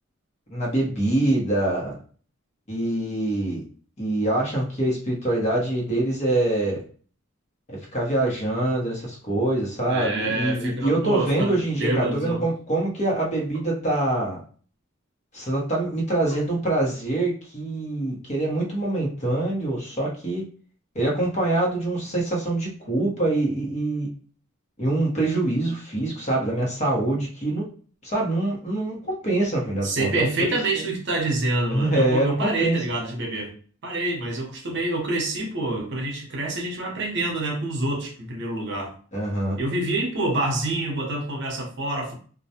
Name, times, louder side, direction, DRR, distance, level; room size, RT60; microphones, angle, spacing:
voice 1, 0.5-2.0 2.7-3.6 4.0-6.8 7.9-14.4 15.3-20.4 20.9-24.1 24.8-27.6 28.0-30.6 31.7-32.8 39.1-39.6, right 2 dB, 35° left, -3 dB, 0.9 m, -24 dB
voice 2, 9.9-12.4 29.8-33.5 33.8-38.9 39.6-42.1, right 2 dB, 60° right, 0 dB, 0.7 m, -27 dB
2.4 x 2.1 x 2.7 m, 0.42 s
head